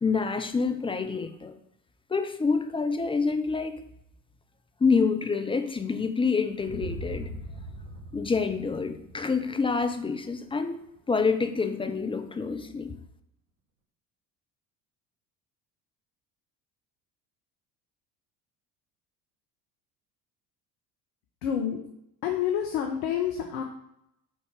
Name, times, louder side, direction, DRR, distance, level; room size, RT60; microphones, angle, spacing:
voice 1, 0.0-1.5 2.1-3.8 4.8-7.3 8.1-12.9, left 4 dB, 10° left, 8 dB, 0.4 m, -27 dB
sound 1, 6.6-10.7, right 1 dB, 75° right, 1.0 m, -41 dB
voice 2, 21.4-21.8 22.2-23.6, left 9 dB, 65° left, 3 dB, 0.8 m, -28 dB
4.6 x 4.2 x 4.9 m, 0.80 s
figure-of-eight pair, 60°, 47 cm